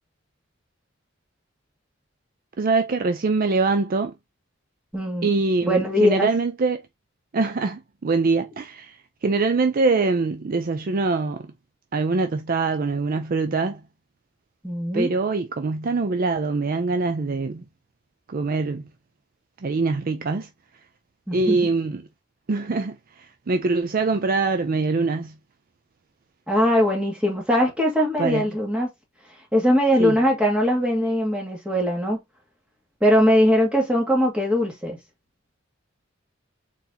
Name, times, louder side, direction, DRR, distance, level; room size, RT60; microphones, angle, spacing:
voice 1, 2.6-4.1 5.2-6.8 7.3-11.5 11.9-13.8 14.9-17.6 18.3-18.8 19.6-20.5 21.3-22.0 22.5-25.3 28.2-28.5 30.0-30.2, right 3 dB, 45° right, 0.5 m, -23 dB
voice 2, 4.9-5.3 5.6-6.3 14.6-15.1 21.3-21.6 26.5-28.9 29.5-32.2 33.0-35.0, equal, 5° right, 1.9 m, -21 dB
4.1 x 4.0 x 2.8 m
head